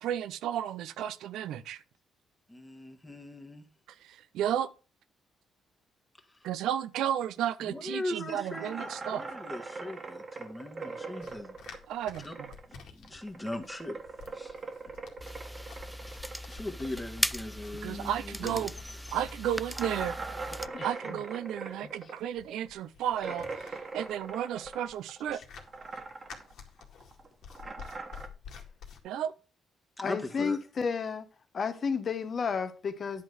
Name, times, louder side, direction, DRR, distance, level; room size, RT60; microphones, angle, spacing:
voice 1, 0.0-1.8 4.0-4.7 6.4-9.2 11.9-12.5 17.8-18.7 19.1-20.2 20.8-25.4 29.0-29.3, right 10 dB, 85° right, 0.6 m, -33 dB
voice 2, 2.5-3.6 6.3-6.4 7.6-11.6 12.2-12.3 12.7-14.0 14.3-14.6 14.8-14.9 16.5-18.7 19.1-19.2 30.0-30.6, left 1 dB, 15° left, 1.5 m, -39 dB
sound 1, 8.5-12.8 13.0-18.1 18.4-18.5 18.9-19.0 19.7-25.3 25.6-26.5 26.8-28.3, right 4 dB, 40° right, 1.5 m, -41 dB
sound 2, 11.2-29.0, left 6 dB, 75° left, 2.0 m, -51 dB
sound 3, 15.2-20.7, equal, ahead, 0.3 m, -38 dB
voice 3, 20.7-21.2 30.0-31.3 31.5-33.2, left 5 dB, 45° left, 1.2 m, -32 dB
10.5 x 4.0 x 6.2 m
cardioid pair, 90°, 0 cm